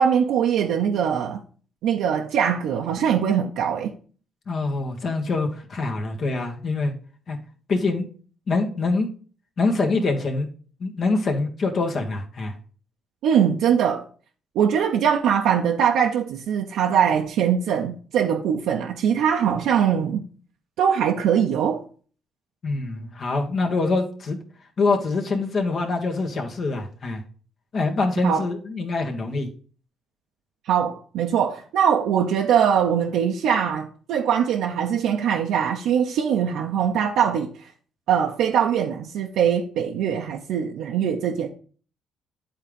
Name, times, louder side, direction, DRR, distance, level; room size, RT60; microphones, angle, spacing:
voice 1, 0.0-1.4 1.8-3.9 13.2-14.0 14.5-20.2 20.8-21.8 28.2-28.5 30.7-37.7 38.1-41.5, right 8 dB, 80° right, 0.7 m, -22 dB
voice 2, 4.5-6.9 7.3-7.4 7.7-8.1 8.5-9.1 9.6-10.5 10.8-12.5 22.6-24.4 24.8-27.2 27.7-29.5, left 3 dB, 50° left, 1.5 m, -24 dB
8.7 x 3.7 x 5.2 m
cardioid pair, 80°, 0 cm